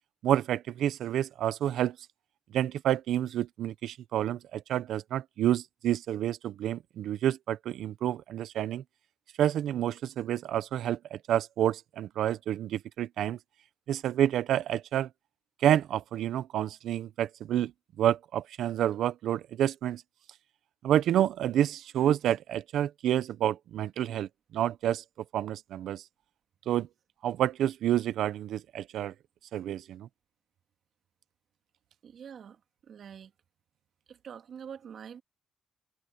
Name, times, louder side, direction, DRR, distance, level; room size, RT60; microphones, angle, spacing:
voice 1, 0.2-2.0 2.5-8.8 9.4-13.4 13.9-15.1 15.6-17.7 18.0-20.0 20.8-25.0 25.3-26.0 26.7-26.9 27.2-29.1 29.5-30.1, right 11 dB, 75° right, 0.9 m, -29 dB
voice 2, 32.0-32.6 32.9-33.3 34.1-35.2, right 7 dB, 60° right, 2.6 m, -45 dB
cardioid pair, 90°, 0 cm